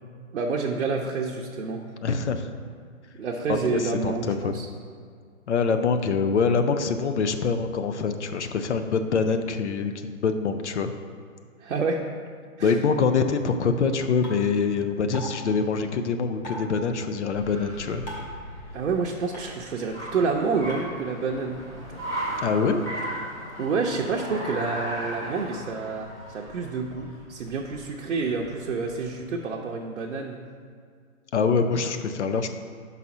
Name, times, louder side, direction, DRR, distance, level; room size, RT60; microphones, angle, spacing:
voice 1, 0.3-1.8 3.2-4.7 11.6-12.0 12.6-12.8 18.7-21.6 23.6-30.4, right 4 dB, 65° right, -1 dB, 0.7 m, -28 dB
voice 2, 2.0-2.5 3.5-4.6 5.5-10.9 12.6-18.0 22.4-22.8 31.3-32.5, left 5 dB, 55° left, 8 dB, 0.6 m, -25 dB
sound 1, 14.2-14.3 15.1-15.3 16.4-16.6 18.1-18.3 19.3-19.4 20.7-20.8, right 1 dB, 30° left, 1.5 m, -36 dB
Car, 16.3-29.2, right 1 dB, 15° left, 1.2 m, -37 dB
5.5 x 4.1 x 6.0 m, 2.1 s
hypercardioid pair, 160°, 42 cm